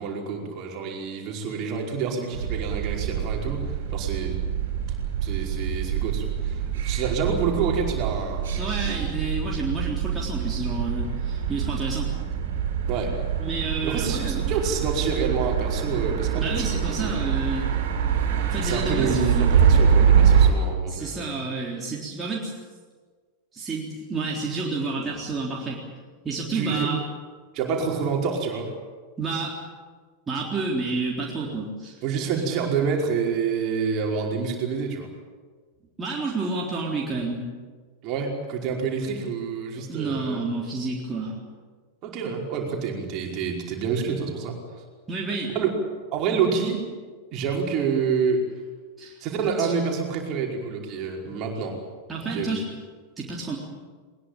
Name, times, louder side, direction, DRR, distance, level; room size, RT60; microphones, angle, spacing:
voice 1, 0.0-4.4 5.2-8.5 8.8-9.1 12.9-13.2 13.8-17.1 18.6-21.3 26.5-26.9 27.5-28.7 32.0-35.1 38.0-40.4 42.0-44.6 45.5-45.7 46.1-46.9 47.3-48.5 49.2-51.8 52.2-52.5, right 5 dB, 40° right, 0 dB, 5.1 m, -28 dB
sound 1, 2.3-20.5, right 8 dB, 55° right, 4.8 m, -24 dB
voice 2, 8.6-12.1 13.4-14.4 16.3-17.7 18.4-19.2 20.9-22.5 23.5-25.8 26.2-27.0 29.2-29.6 30.3-32.0 36.0-37.5 39.7-41.4 45.1-45.5 49.0-49.2 49.6-49.7 52.1-52.6 53.2-53.6, right 3 dB, 15° right, -4 dB, 3.8 m, -30 dB
21.5 x 21.0 x 8.9 m, 1.5 s
figure-of-eight pair, 90°, 0 cm